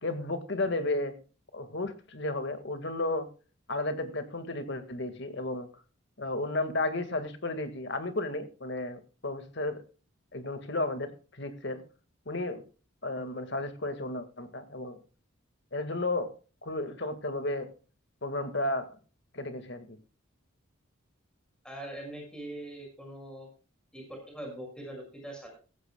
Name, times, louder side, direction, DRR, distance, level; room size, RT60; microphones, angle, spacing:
voice 1, 0.0-1.2 1.5-3.3 3.7-5.7 6.2-9.8 10.3-11.8 12.3-12.6 13.0-15.0 15.7-16.3 16.6-17.7 18.2-18.9 19.3-20.0, left 2 dB, 55° left, 9 dB, 1.9 m, -33 dB
voice 2, 21.6-23.5 23.9-25.5, right 1 dB, 5° left, 2 dB, 6.2 m, -42 dB
16.0 x 15.5 x 2.3 m, 0.36 s
head